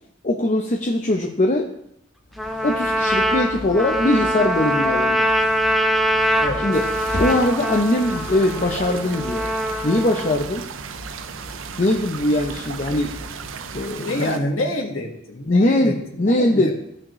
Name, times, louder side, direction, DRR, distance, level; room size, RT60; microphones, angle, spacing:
voice 1, 0.2-1.7 2.6-5.3 6.6-6.9 7.2-9.5 9.8-10.7 11.8-13.2 13.7-14.4 15.5-16.7, left 1 dB, 40° left, 1 dB, 0.6 m, -21 dB
sound 1, 2.3-14.0, left 1 dB, 60° left, 1.1 m, -37 dB
Trumpet, 2.4-10.4, equal, ahead, 0.6 m, -23 dB
sound 2, 6.7-14.4, right 7 dB, 80° right, 0.5 m, -36 dB
voice 2, 14.0-16.7, left 1 dB, 85° left, 1 dB, 1.6 m, -27 dB
15.5 x 6.1 x 3.1 m, 0.78 s
head